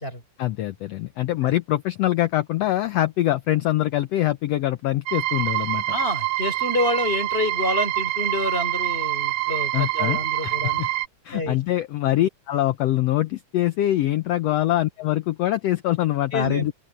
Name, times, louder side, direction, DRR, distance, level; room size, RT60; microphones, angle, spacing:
voice 1, 0.4-5.8 9.7-10.9 11.2-16.7, left 14 dB, 80° left, 1.5 m, -24 dB
sound 1, 5.1-11.1, right 16 dB, 85° right, 1.5 m, -26 dB
voice 2, 5.9-10.8 11.3-11.6 16.3-16.8, left 1 dB, 15° left, 4.7 m, -27 dB
open air
omnidirectional pair, 3.7 m